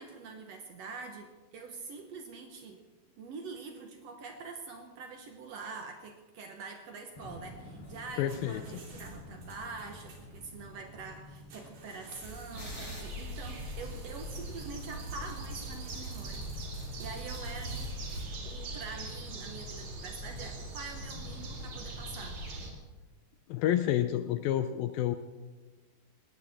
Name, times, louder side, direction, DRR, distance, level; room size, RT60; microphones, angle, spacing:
voice 1, 0.0-2.8 3.2-16.5 16.8-17.9 18.4-22.4, right 4 dB, 90° right, 4 dB, 1.4 m, -45 dB
sound 1, 7.1-13.0, left 1 dB, 35° left, 5.9 m, -49 dB
sound 2, 7.8-18.2, right 2 dB, 70° right, 5.3 m, -50 dB
voice 2, 8.2-8.6 23.5-25.2, left 11 dB, 80° left, 10 dB, 2.1 m, -29 dB
sound 3, 12.5-22.7, right 1 dB, 50° right, 3.3 m, -41 dB
20.5 x 18.5 x 3.7 m, 1.3 s
omnidirectional pair, 4.8 m